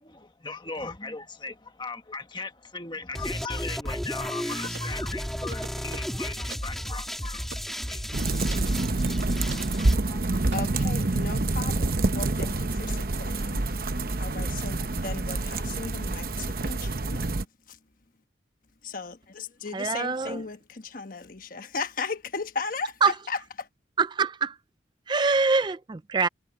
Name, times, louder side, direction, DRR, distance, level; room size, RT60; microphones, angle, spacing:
voice 1, 0.0-7.5 7.9-8.1 8.6-8.7 10.1-10.4, left 4 dB, 25° left, 1.5 m, -38 dB
sound 1, 3.1-9.9, equal, ahead, 2.9 m, -33 dB
sound 2, 4.5-5.0 5.5-6.1 6.5-6.7 7.5-7.7 8.5-8.7 9.5-9.7 10.5-10.6, right 5 dB, 80° right, 1.8 m, -42 dB
sound 3, 8.1-17.4, right 2 dB, 50° right, 0.9 m, -27 dB
voice 2, 10.5-13.7 14.2-17.4 17.7-17.8 18.8-23.7, left 4 dB, 50° left, 1.2 m, -36 dB
voice 3, 19.7-20.4 23.0-23.1 24.0-24.6 25.1-26.3, right 4 dB, 25° right, 0.3 m, -24 dB
head